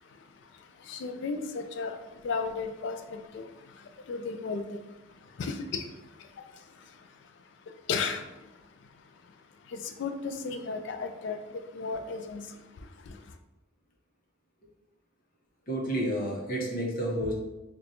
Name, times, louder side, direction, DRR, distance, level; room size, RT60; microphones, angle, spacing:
voice 1, 0.9-2.0 2.2-3.0 3.3-3.4 4.1-4.6 5.4-5.8 7.9-8.2 10.0-11.4 11.7-12.4, left 4 dB, 65° left, 6 dB, 0.3 m, -33 dB
voice 2, 15.7-17.3, right 1 dB, 45° left, -2 dB, 0.8 m, -30 dB
4.2 x 2.2 x 2.6 m, 1.0 s
head